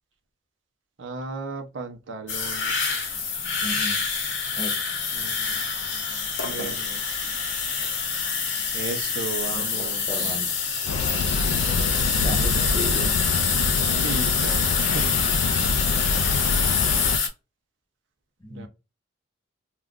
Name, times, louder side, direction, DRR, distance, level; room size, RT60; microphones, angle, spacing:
voice 1, 1.0-3.0 5.1-5.6 6.4-7.3 8.7-10.4 14.0-15.3 18.5-18.7, right 4 dB, 65° right, 0.6 m, -35 dB
sound 1, 2.3-17.3, left 5 dB, 65° left, 0.8 m, -26 dB
voice 2, 3.6-4.0 4.6-4.8 9.5-10.6 12.2-13.2 18.4-18.7, equal, 25° left, 0.8 m, -35 dB
sound 2, 10.9-17.2, left 3 dB, 85° left, 0.3 m, -26 dB
2.4 x 2.2 x 3.6 m
head